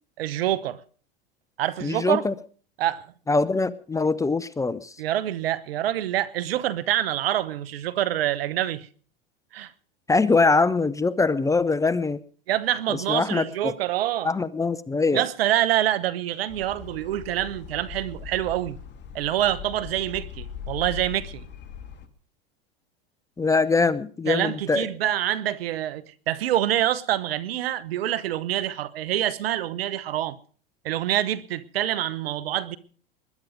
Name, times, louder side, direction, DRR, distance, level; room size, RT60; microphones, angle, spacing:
voice 1, 0.2-0.8 1.6-2.2 2.8-3.1 5.0-8.9 9.5-9.7 12.5-14.3 15.1-18.8 19.1-21.4 24.3-30.4 30.8-32.8, right 12 dB, 75° right, 1.1 m, -26 dB
voice 2, 1.8-2.3 3.3-4.9 10.1-12.2 12.9-13.7 14.2-15.2 23.4-24.9, left 3 dB, 10° left, 0.7 m, -23 dB
sound 1, 16.5-22.1, left 8 dB, 35° left, 2.0 m, -40 dB
20.5 x 10.5 x 5.1 m
hypercardioid pair, 100°, 30 cm